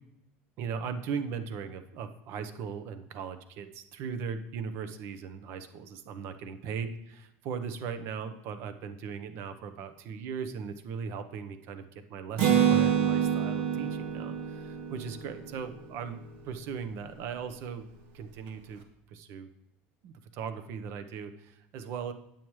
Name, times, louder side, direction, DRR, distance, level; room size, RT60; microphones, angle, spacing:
voice 1, 0.6-17.9 18.1-18.8 19.1-19.5 20.0-22.1, right 6 dB, 50° right, 10 dB, 0.8 m, -38 dB
Acoustic guitar, 12.4-16.0, right 8 dB, 80° right, 1.5 m, -27 dB
9.0 x 8.6 x 3.1 m, 0.83 s
cardioid pair, 160°, 6 cm